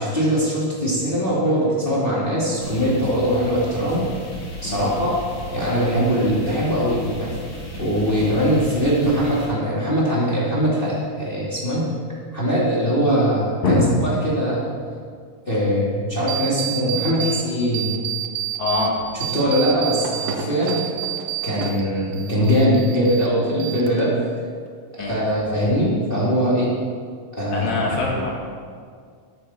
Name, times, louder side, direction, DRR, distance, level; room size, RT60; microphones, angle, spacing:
voice 1, 0.0-4.1 4.6-5.2 5.5-7.4 7.8-11.8 12.3-14.7 15.5-17.9 19.1-20.8 21.4-24.1 25.0-26.7 27.3-27.8, equal, 20° left, -7 dB, 2.6 m, -21 dB
sound 1, 2.6-9.5, equal, 40° left, 2.8 m, -35 dB
sound 2, 16.3-17.4 17.7-18.9 19.2-21.8 22.1-23.3 23.6-24.2, right 10 dB, 65° right, 1.8 m, -28 dB
voice 2, 18.6-18.9 25.0-25.1 27.5-28.3, left 3 dB, 65° left, -3 dB, 3.6 m, -23 dB
12.5 x 12.0 x 4.4 m, 2.1 s
omnidirectional pair, 3.5 m